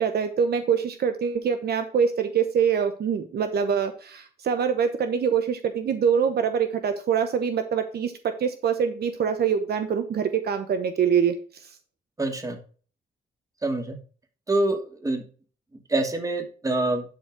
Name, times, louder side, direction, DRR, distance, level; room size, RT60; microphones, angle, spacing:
voice 1, 0.0-11.3, right 7 dB, 70° right, 8 dB, 1.1 m, -24 dB
voice 2, 12.2-12.6 13.6-14.0 14.5-15.2 15.9-17.0, right 2 dB, 20° right, 4 dB, 2.5 m, -25 dB
11.5 x 4.7 x 4.8 m, 0.39 s
cardioid pair, 95°, 17 cm